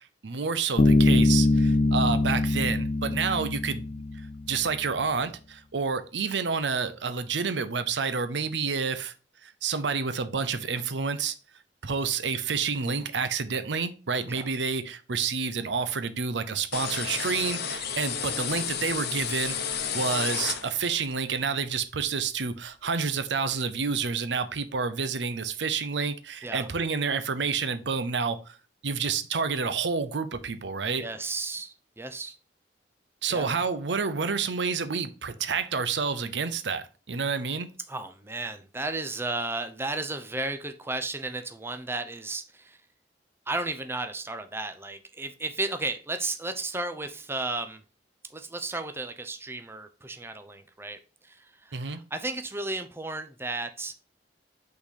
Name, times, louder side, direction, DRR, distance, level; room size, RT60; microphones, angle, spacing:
voice 1, 0.2-3.8 4.5-9.1 9.4-11.3 11.8-19.6 19.9-28.6 28.8-31.0 33.2-37.7 51.7-52.0, right 5 dB, 75° right, 0.7 m, -29 dB
Bass guitar, 0.8-4.5, left 2 dB, 40° left, 0.4 m, -23 dB
sound 1, 16.7-21.1, left 7 dB, 60° left, 0.9 m, -32 dB
voice 2, 31.0-32.4 33.3-33.5 37.9-42.8 43.5-47.8 48.3-53.9, right 2 dB, 15° right, 0.6 m, -34 dB
5.8 x 4.0 x 4.1 m
head